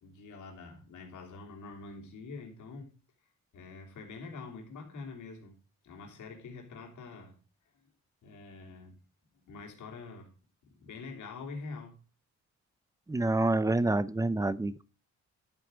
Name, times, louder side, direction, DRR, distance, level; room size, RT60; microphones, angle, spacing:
voice 1, 0.0-2.9 3.5-7.4 8.2-9.0 9.3-10.3 10.6-12.0, left 4 dB, 80° left, 1 dB, 3.3 m, -45 dB
voice 2, 13.1-14.8, right 2 dB, 10° right, 18 dB, 0.5 m, -27 dB
11.5 x 8.3 x 5.1 m, 0.34 s
cardioid pair, 120°, 29 cm